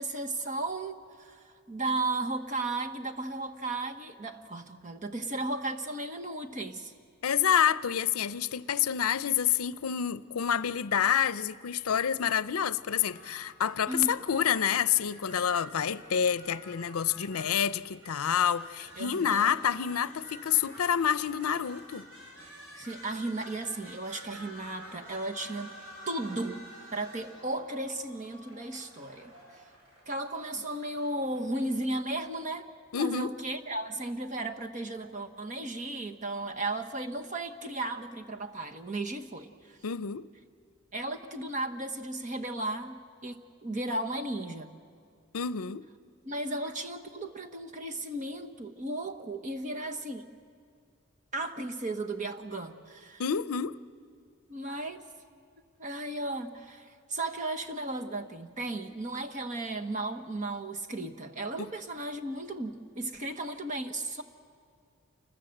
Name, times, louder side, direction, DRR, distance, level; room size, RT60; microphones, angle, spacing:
voice 1, 0.0-6.9 13.9-14.2 19.0-19.6 22.7-25.7 26.1-29.3 30.1-32.7 33.0-39.8 40.9-44.7 46.2-50.3 51.3-53.2 54.5-55.1 55.8-64.2, right 2 dB, 35° right, 1.2 m, -35 dB
voice 2, 7.2-22.1 32.9-33.3 39.8-40.3 45.3-45.8 53.2-53.8 61.6-61.7, left 8 dB, 85° left, 0.6 m, -28 dB
sound 1, 13.0-31.8, equal, 85° right, 7.8 m, -50 dB
28.5 x 21.0 x 7.8 m
head